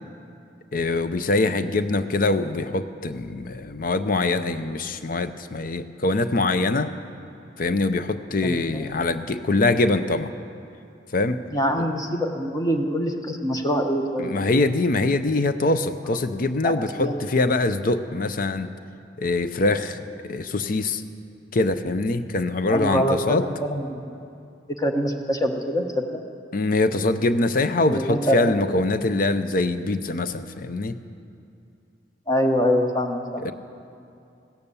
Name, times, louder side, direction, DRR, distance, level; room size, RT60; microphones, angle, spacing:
voice 1, 0.7-6.9 7.6-10.3 11.1-11.4 14.2-18.7 19.2-21.0 21.5-23.5 26.5-31.0 33.4-33.5, left 2 dB, 50° left, 11 dB, 0.6 m, -23 dB
voice 2, 8.4-8.9 11.5-14.3 16.6-17.2 22.7-24.1 24.8-26.2 27.9-28.8 32.3-33.4, equal, 20° left, 4 dB, 1.0 m, -25 dB
16.0 x 12.5 x 7.0 m, 2.6 s
head